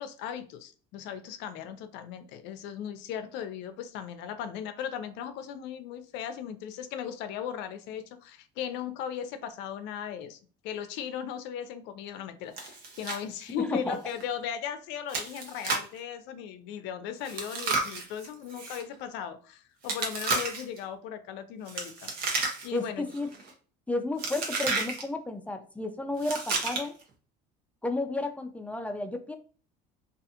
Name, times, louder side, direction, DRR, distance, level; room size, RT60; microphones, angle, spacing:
voice 1, 0.0-10.4 10.6-22.1 22.6-23.1, left 9 dB, 70° left, 0.5 m, -37 dB
Chewing mastication, 12.6-13.2 13.5-13.6 14.1-14.2 15.1-16.0 17.2-18.8 19.8-20.8 21.7-22.8 23.1-23.5 24.2-25.0 26.2-27.0, right 3 dB, 55° right, 0.8 m, -32 dB
voice 2, 13.5-14.0 22.7-23.3 23.9-26.9 27.8-29.4, left 2 dB, 5° left, 0.3 m, -32 dB
2.4 x 2.4 x 2.7 m
supercardioid pair, 105°, 19 cm